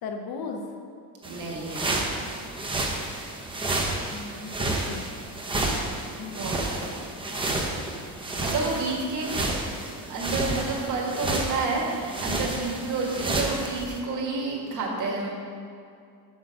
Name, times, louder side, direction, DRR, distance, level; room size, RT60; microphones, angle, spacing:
voice 1, 0.0-0.6 4.1-5.1 6.2-6.5, left 4 dB, 60° left, 3 dB, 1.0 m, -36 dB
sound 1, 1.2-14.0, right 2 dB, 10° right, 0.7 m, -31 dB
voice 2, 1.2-2.3 5.5-5.8 6.3-7.0 8.4-9.4 10.1-15.3, right 3 dB, 45° right, -2 dB, 1.6 m, -30 dB
6.8 x 6.2 x 5.3 m, 2.4 s
cardioid pair, 150°, 41 cm